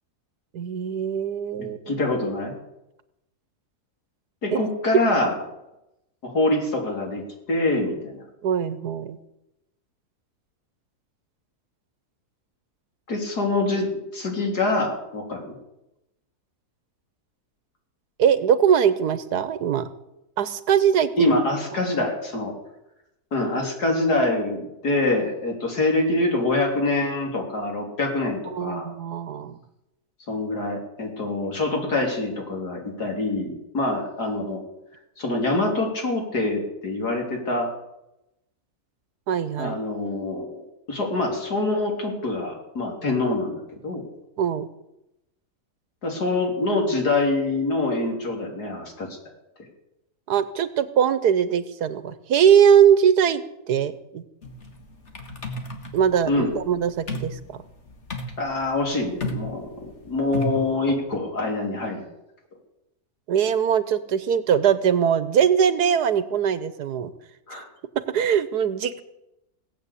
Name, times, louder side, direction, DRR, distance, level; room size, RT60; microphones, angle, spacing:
voice 1, 0.5-2.0 4.5-4.6 8.4-9.2 18.2-19.9 20.4-21.3 28.5-29.6 39.3-39.8 44.4-44.7 50.3-53.4 53.7-54.2 55.9-57.4 63.3-67.1 68.1-69.0, right 8 dB, 85° right, 14 dB, 1.6 m, -21 dB
voice 2, 1.6-2.6 4.4-5.4 6.2-7.2 7.5-8.2 13.1-15.5 21.2-22.5 23.3-28.9 30.3-34.6 35.2-37.7 39.6-44.1 46.0-49.1 56.3-56.5 58.4-62.1 67.5-67.7, left 2 dB, 90° left, 1 dB, 4.0 m, -25 dB
sound 1, 54.4-60.7, left 1 dB, 45° left, 2.2 m, -34 dB
18.0 x 8.4 x 8.4 m, 0.89 s
omnidirectional pair, 1.6 m